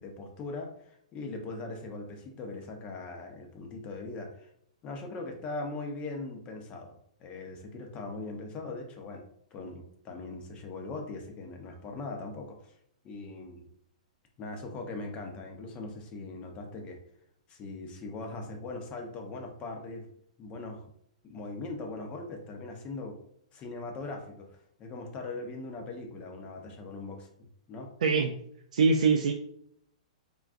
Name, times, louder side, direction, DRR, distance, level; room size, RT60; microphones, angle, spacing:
voice 1, 0.0-4.5 4.8-9.2 9.5-12.7 13.0-13.7 14.4-17.0 17.5-20.0 20.4-20.8 21.2-23.2 23.5-24.5 24.8-27.3 27.7-27.9, left 3 dB, 30° left, 3 dB, 0.6 m, -40 dB
voice 2, 28.0-28.4 28.7-29.3, right 4 dB, 70° right, 3 dB, 0.3 m, -23 dB
3.6 x 2.2 x 2.5 m, 0.69 s
hypercardioid pair, 125°, 4 cm